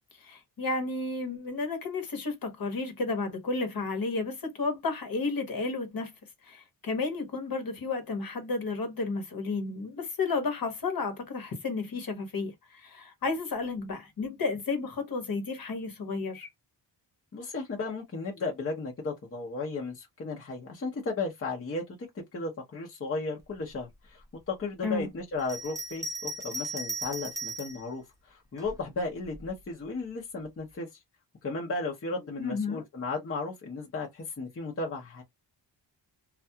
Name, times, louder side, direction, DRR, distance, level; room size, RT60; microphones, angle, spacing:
voice 1, 0.2-6.1 6.4-16.5 24.8-25.1 32.4-32.8, left 3 dB, 55° left, 1.1 m, -32 dB
voice 2, 17.3-30.9 31.4-35.2, left 3 dB, 30° left, 0.8 m, -35 dB
Bell, 25.4-27.8 28.6-29.5, right 2 dB, 10° right, 0.5 m, -37 dB
2.3 x 2.3 x 2.7 m
wide cardioid pair, 145°, 43 cm